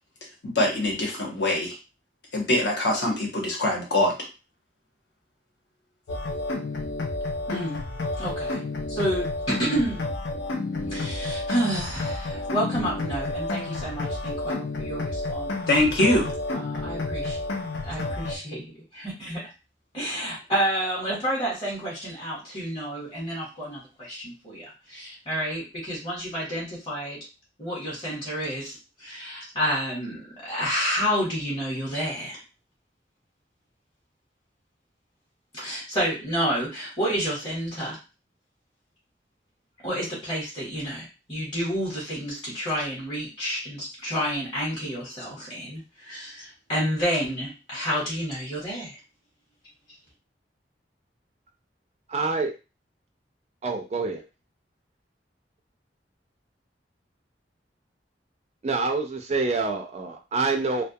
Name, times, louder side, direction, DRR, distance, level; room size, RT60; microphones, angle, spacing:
voice 1, 0.4-1.8 2.3-4.1 15.7-16.3, left 1 dB, 70° left, 0 dB, 0.9 m, -23 dB
sound 1, 6.1-18.4, left 2 dB, 90° left, 0.5 m, -30 dB
voice 2, 7.5-7.8 8.2-8.6 8.9-10.1 10.9-15.6 16.5-17.4 17.8-19.4 19.9-27.2 27.6-32.4 35.5-38.0 39.8-49.0, equal, 30° left, -5 dB, 0.9 m, -30 dB
voice 3, 52.1-52.5 53.6-54.2 58.6-60.8, right 3 dB, 40° right, 3 dB, 0.4 m, -26 dB
2.2 x 2.2 x 2.7 m, 0.29 s
head